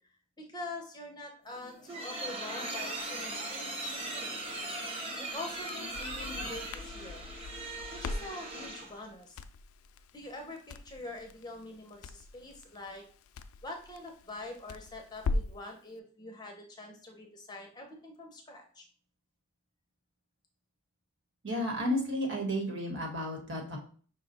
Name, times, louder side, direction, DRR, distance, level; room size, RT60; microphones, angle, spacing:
voice 1, 0.4-4.4 5.2-7.2 7.9-9.4 10.1-13.0 13.6-18.9 22.3-22.4, left 2 dB, 20° left, 2 dB, 0.6 m, -45 dB
sound 1, 1.5-9.0, right 2 dB, 25° right, 0.7 m, -39 dB
Crackle, 5.4-15.7, left 3 dB, 80° left, 0.3 m, -41 dB
voice 2, 21.4-23.8, equal, 55° right, 0 dB, 1.2 m, -32 dB
5.5 x 2.3 x 4.0 m, 0.44 s
head